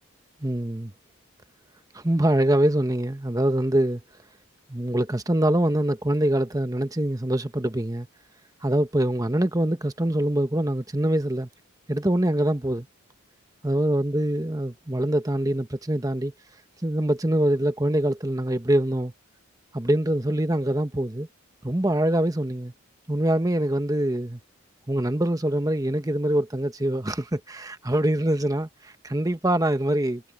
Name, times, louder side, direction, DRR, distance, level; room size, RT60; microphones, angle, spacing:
voice 1, 0.4-0.9 1.9-4.0 4.7-8.1 8.6-11.5 11.9-12.9 13.6-16.3 16.8-19.1 19.7-21.3 21.6-22.7 23.1-24.4 24.9-30.2, right 1 dB, 15° right, 1.0 m, -24 dB
head